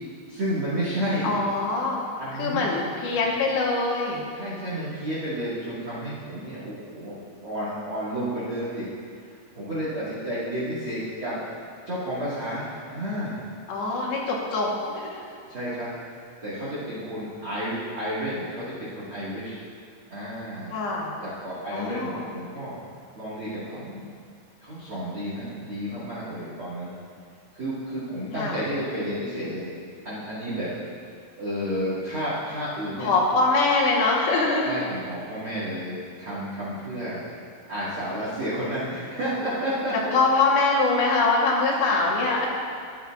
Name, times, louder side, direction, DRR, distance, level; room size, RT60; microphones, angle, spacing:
voice 1, 0.3-1.3 2.2-2.6 4.3-7.1 7.4-8.9 9.5-11.4 11.8-13.4 15.5-15.9 16.4-19.6 20.1-20.7 21.2-22.8 23.1-24.0 24.6-26.9 27.5-29.7 30.0-30.7 31.4-33.1 34.6-37.2 37.7-40.1, equal, 60° right, -10 dB, 1.3 m, -31 dB
voice 2, 1.2-2.0 2.3-4.3 13.7-15.2 20.7-21.1 21.7-22.3 28.3-28.6 33.0-34.7 40.1-42.5, left 3 dB, 75° left, -3 dB, 3.2 m, -23 dB
13.0 x 10.5 x 2.4 m, 2.2 s
omnidirectional pair, 5.3 m